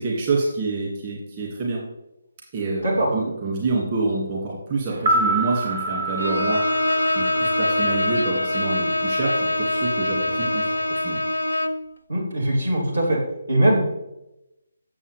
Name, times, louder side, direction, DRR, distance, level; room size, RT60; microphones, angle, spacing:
voice 1, 0.0-1.8 2.5-10.7 11.0-11.2, right 3 dB, 30° right, -4 dB, 1.9 m, -27 dB
sound 1, 4.9-9.1 9.3-9.4, right 2 dB, 50° right, 1.9 m, -27 dB
Bowed string instrument, 6.2-11.9, left 2 dB, 85° left, 0.5 m, -24 dB
voice 2, 12.1-13.2 13.5-13.8, right 1 dB, 75° right, -3 dB, 2.9 m, -20 dB
8.4 x 7.1 x 3.3 m, 0.92 s
figure-of-eight pair, 145°, 0 cm